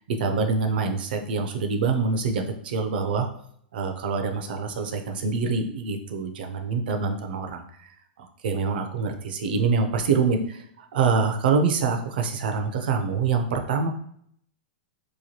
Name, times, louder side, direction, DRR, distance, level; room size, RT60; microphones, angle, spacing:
voice 1, 0.1-3.3 3.7-13.9, right 5 dB, 75° right, 5 dB, 0.5 m, -25 dB
3.0 x 2.2 x 2.8 m, 0.67 s
hypercardioid pair, 125°, 5 cm